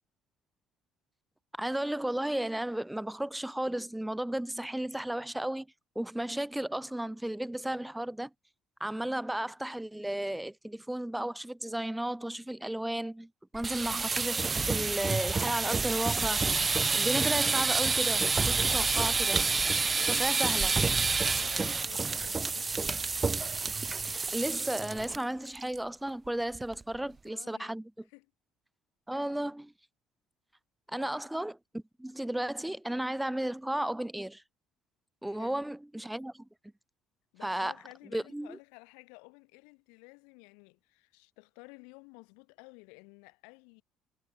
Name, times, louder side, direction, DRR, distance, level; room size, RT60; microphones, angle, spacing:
voice 1, 1.6-5.7 5.9-8.3 8.8-16.4 16.9-19.4 20.1-20.7 24.0-27.9 29.1-29.7 30.9-34.4 35.2-36.5 37.4-37.7 38.1-38.6, right 1 dB, 5° right, 0.9 m, -34 dB
sound 1, 13.5-25.2 25.5-25.8 26.1-26.2 26.5-27.0, right 4 dB, 30° right, 0.4 m, -28 dB
voice 2, 19.9-20.4 21.2-23.0 26.9-27.7 28.1-28.3 31.0-31.2 35.2-35.6 37.3-43.8, left 37 dB, 75° left, 3.0 m, -54 dB
hypercardioid pair, 60°, 0 cm